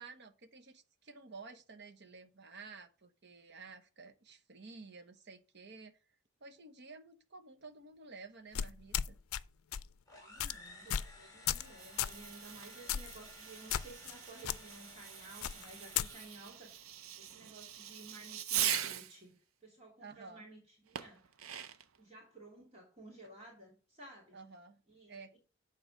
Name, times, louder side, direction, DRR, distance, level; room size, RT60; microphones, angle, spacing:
voice 1, 0.0-6.0 6.4-9.2 20.0-20.5 24.3-24.8 25.1-25.4, right 4 dB, 55° right, 1.0 m, -52 dB
sound 1, 8.5-9.4 9.7-9.9 10.4-10.5 10.9-11.1 11.5-11.7 12.0-12.2 12.9-13.2 13.7-14.1 14.4-14.6 15.4-16.1, left 10 dB, 90° left, 0.4 m, -35 dB
sound 2, 10.1-16.8, left 2 dB, 20° left, 3.3 m, -56 dB
voice 2, 10.1-16.9 17.1-21.3 22.0-24.4 24.9-25.4, right 2 dB, 30° right, 2.8 m, -55 dB
Fireworks, 11.5-19.2 21.0-22.0, right 10 dB, 80° right, 0.7 m, -41 dB
8.9 x 4.1 x 6.4 m
head